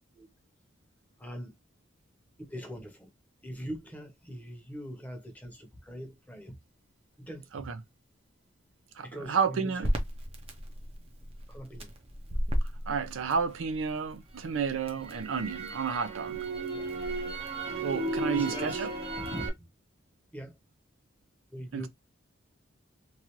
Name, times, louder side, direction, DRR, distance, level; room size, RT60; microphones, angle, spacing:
voice 1, 1.2-1.6 2.4-3.1 3.4-6.6 7.2-7.7 9.0-9.9 11.5-11.9 16.7-16.9 18.3-19.5 20.3-20.6 21.5-21.9, equal, 10° left, 0.8 m, -42 dB
voice 2, 9.0-9.9 12.9-16.4 17.8-18.9 21.7-21.9, right 6 dB, 80° right, 0.5 m, -31 dB
Crackle, 9.8-14.0 14.3-19.5, right 1 dB, 30° right, 0.6 m, -33 dB
3.1 x 2.4 x 2.9 m
head